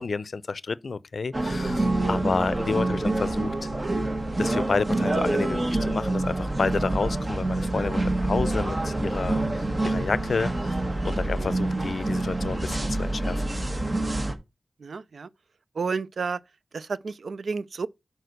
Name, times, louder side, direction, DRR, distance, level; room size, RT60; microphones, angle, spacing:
voice 1, 0.0-3.5 4.4-10.8 11.0-13.4, left 4 dB, 70° left, 0.5 m, -30 dB
sound 1, 1.3-14.3, right 2 dB, 35° right, 1.3 m, -27 dB
voice 2, 14.8-15.3 15.8-16.4 16.7-17.9, right 5 dB, 80° right, 0.4 m, -31 dB
6.7 x 4.3 x 6.5 m
cardioid pair, 60°, 0 cm